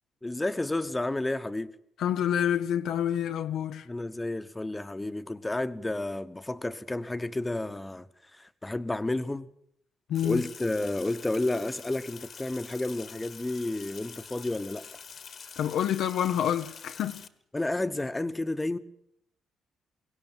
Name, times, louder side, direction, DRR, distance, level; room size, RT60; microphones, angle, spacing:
voice 1, 0.2-1.7 3.9-9.5 10.2-14.9 17.5-18.8, left 2 dB, 15° left, 1.2 m, -31 dB
voice 2, 2.0-3.9 10.1-10.4 15.6-17.2, left 10 dB, 80° left, 0.9 m, -28 dB
Sink (filling or washing), 10.1-17.3, left 6 dB, 50° left, 1.6 m, -46 dB
22.5 x 17.0 x 9.1 m
cardioid pair, 90°, 0 cm